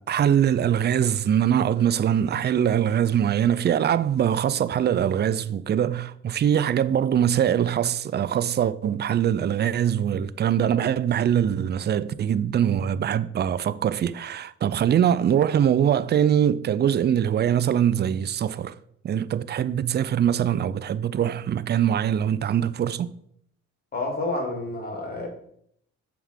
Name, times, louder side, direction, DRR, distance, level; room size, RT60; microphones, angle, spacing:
voice 1, 0.0-18.8 19.0-23.1, right 9 dB, 35° right, 0.4 m, -23 dB
voice 2, 23.9-25.3, left 2 dB, 30° left, 2.5 m, -29 dB
7.1 x 3.6 x 6.4 m
cardioid pair, 90°, 30 cm